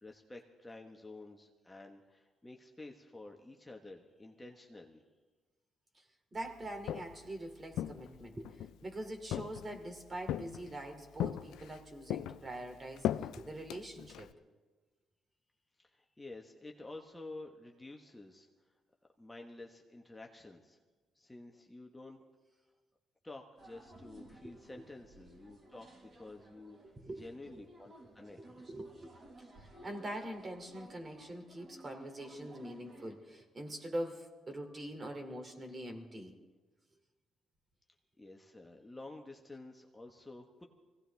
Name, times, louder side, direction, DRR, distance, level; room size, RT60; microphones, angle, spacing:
voice 1, 0.0-5.0 15.8-18.5 19.2-20.8 21.1-22.3 23.2-25.9 26.2-26.8 27.2-28.4 38.2-40.7, left 2 dB, 15° left, 1 dB, 1.3 m, -50 dB
voice 2, 6.3-14.3 24.4-24.6 27.0-27.2 27.5-27.6 28.0-28.1 28.7-29.1 29.6-36.3, right 1 dB, 30° right, 4 dB, 2.8 m, -44 dB
Walk footsteps, 6.6-7.3 7.7-8.8 9.3-9.9 10.3-10.8 11.2-11.8 12.1-14.3, left 11 dB, 85° left, 0.4 m, -38 dB
sound 1, 23.6-33.1, right 1 dB, 50° right, 6.1 m, -57 dB
23.0 x 17.0 x 3.5 m, 1.3 s
cardioid pair, 90°, 0 cm